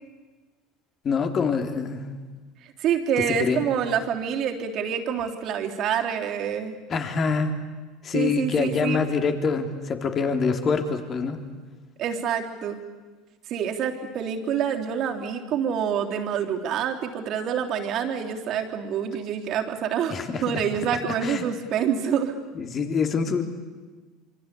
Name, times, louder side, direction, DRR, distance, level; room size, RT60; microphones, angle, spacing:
voice 1, 1.0-2.1 3.3-3.7 6.9-7.5 8.0-11.4 20.1-20.6 21.2-21.4 22.5-23.4, left 5 dB, 40° left, 6 dB, 3.5 m, -25 dB
voice 2, 2.8-6.8 8.1-9.0 12.0-12.8 13.5-20.2 20.4-22.3, right 8 dB, 55° right, 3 dB, 3.5 m, -27 dB
26.0 x 25.0 x 8.5 m, 1.3 s
hypercardioid pair, 85°, 0 cm